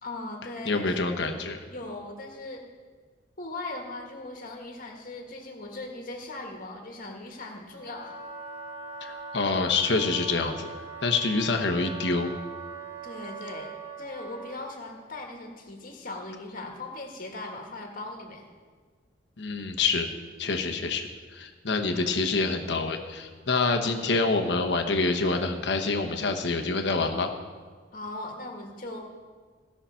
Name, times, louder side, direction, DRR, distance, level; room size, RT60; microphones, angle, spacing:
voice 1, 0.0-1.4 1.7-2.6 3.4-8.2 13.0-13.7 14.0-18.5 27.9-29.0, left 2 dB, 50° left, 2 dB, 1.7 m, -39 dB
voice 2, 0.7-1.6 9.0-10.7 11.0-12.3 19.4-20.1 20.4-21.1 21.3-27.3, left 3 dB, 65° left, 4 dB, 1.1 m, -26 dB
Wind instrument woodwind instrument, 7.7-14.8, right 4 dB, 15° right, 1.4 m, -41 dB
16.0 x 5.8 x 5.7 m, 1.5 s
head